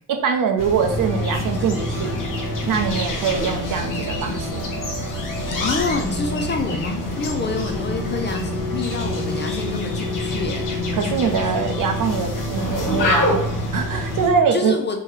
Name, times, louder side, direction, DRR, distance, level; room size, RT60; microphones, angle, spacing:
voice 1, 0.1-2.1 2.7-4.6 10.9-14.8, right 6 dB, 50° right, 5 dB, 0.6 m, -23 dB
sound 1, 0.6-14.3, left 1 dB, 50° left, 0.9 m, -27 dB
sound 2, 0.8-14.5, left 1 dB, 10° right, 1.2 m, -31 dB
voice 2, 5.6-10.7 14.5-15.0, left 3 dB, 25° left, 4 dB, 0.5 m, -27 dB
2.8 x 2.2 x 3.2 m, 0.65 s
hypercardioid pair, 45°, 43 cm